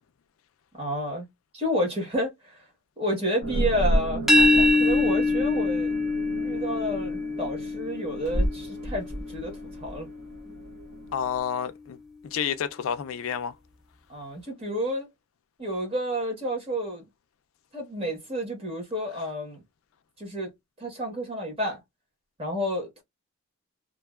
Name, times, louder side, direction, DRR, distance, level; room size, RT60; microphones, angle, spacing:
voice 1, 0.8-1.3 1.5-2.7 3.0-5.9 6.4-10.1 10.5-10.6 14.1-15.1 15.6-17.0 17.7-19.6 20.2-20.5 20.8-21.8 22.4-23.0, equal, 25° right, 1.1 m, -30 dB
sound 1, 3.4-11.4, right 1 dB, 50° right, 0.8 m, -32 dB
sound 2, 4.3-10.0, left 2 dB, ahead, 0.5 m, -24 dB
voice 2, 11.1-12.0 12.2-13.5, left 8 dB, 70° left, 0.3 m, -29 dB
2.7 x 2.2 x 2.2 m
head